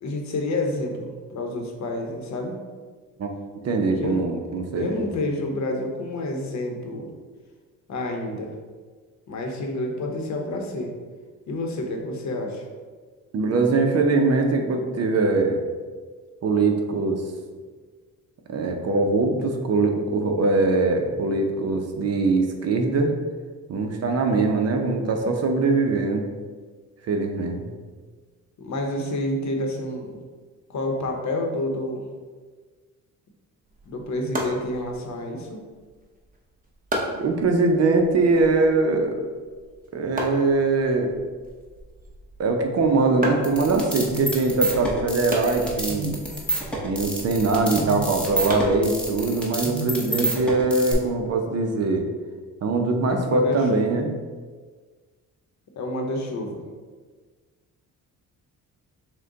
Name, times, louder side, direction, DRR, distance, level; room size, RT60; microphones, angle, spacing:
voice 1, 0.0-2.6 4.0-4.2 4.7-7.1 7.9-8.5 9.3-10.9 11.5-12.7 28.6-30.2 30.7-32.1 33.9-35.6 53.1-54.0 55.8-56.6, left 1 dB, 55° left, 2 dB, 0.8 m, -29 dB
voice 2, 3.6-5.0 13.3-15.6 16.4-17.2 18.5-23.1 23.7-26.2 27.1-27.7 37.2-39.2 39.9-41.1 42.4-46.2 46.8-52.1 52.6-54.1, right 3 dB, 50° right, 4 dB, 0.7 m, -22 dB
sound 1, 33.6-49.5, equal, 25° right, 0.9 m, -36 dB
sound 2, 43.4-50.9, right 1 dB, 5° left, 0.9 m, -28 dB
6.1 x 2.2 x 3.9 m, 1.5 s
cardioid pair, 115°, 33 cm